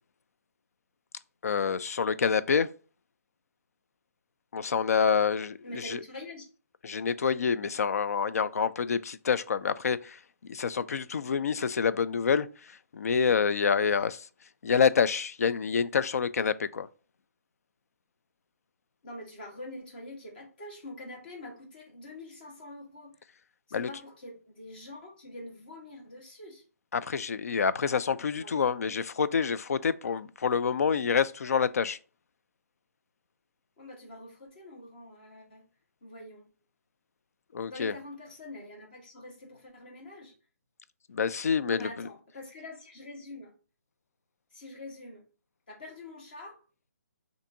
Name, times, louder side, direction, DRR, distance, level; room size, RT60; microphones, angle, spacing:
voice 1, 1.4-2.7 4.5-5.6 5.8-6.0 6.8-14.3 14.6-16.9 23.7-23.9 26.9-32.0 37.5-37.9 41.1-42.1, left 6 dB, 65° left, 0.3 m, -27 dB
voice 2, 5.6-6.4 14.0-14.1 19.0-23.1 23.7-26.6 28.4-28.5 33.8-35.6 36.0-36.5 37.6-40.3 41.6-43.6 44.5-45.3 45.7-46.6, left 1 dB, 35° left, 1.3 m, -45 dB
5.3 x 2.6 x 2.6 m
hypercardioid pair, 175°, 9 cm